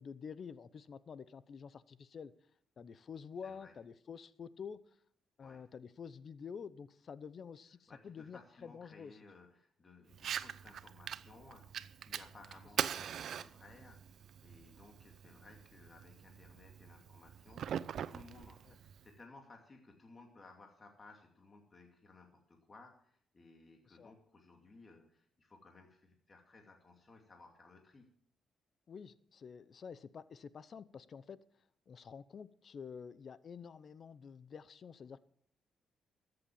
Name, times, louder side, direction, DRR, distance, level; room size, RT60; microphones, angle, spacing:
voice 1, 0.0-2.3 2.8-4.8 5.4-9.2 18.7-18.8 23.9-24.1 28.9-31.4 31.9-35.2, left 6 dB, 50° left, 17 dB, 0.7 m, -49 dB
voice 2, 3.4-3.7 5.4-5.6 7.9-28.1, left 3 dB, 30° left, 2 dB, 2.5 m, -59 dB
Fire, 10.1-19.1, right 9 dB, 65° right, 0.6 m, -43 dB
14.0 x 7.8 x 7.3 m, 0.65 s
cardioid pair, 90°, 0 cm